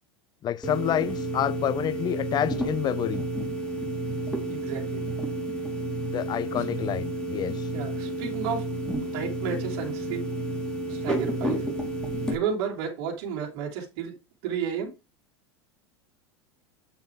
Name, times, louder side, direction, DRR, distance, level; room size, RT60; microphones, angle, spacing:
voice 1, 0.4-3.2 6.0-7.6, left 11 dB, 30° left, 0.5 m, -28 dB
sound 1, 0.6-12.3, right 1 dB, 5° left, 3.5 m, -31 dB
voice 2, 4.5-5.0 6.6-6.7 7.7-10.3 10.9-11.6 12.3-14.2 14.4-14.9, right 7 dB, 55° right, 3.3 m, -32 dB
8.5 x 7.0 x 3.5 m
figure-of-eight pair, 85°, 14 cm